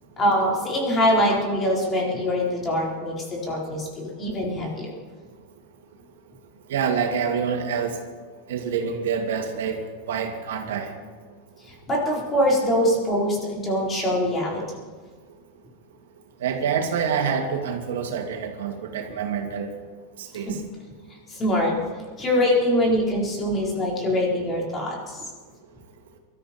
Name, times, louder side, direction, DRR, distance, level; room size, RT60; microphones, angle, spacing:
voice 1, 0.2-4.9 11.7-14.7 20.5-20.6 21.3-21.8 22.2-25.3, equal, 20° left, -2 dB, 4.2 m, -23 dB
voice 2, 6.7-8.0 8.5-10.9 16.4-19.8 20.2-20.6, right 6 dB, 90° right, 3 dB, 2.5 m, -27 dB
23.0 x 13.5 x 4.4 m, 1.5 s
supercardioid pair, 155°, 0 cm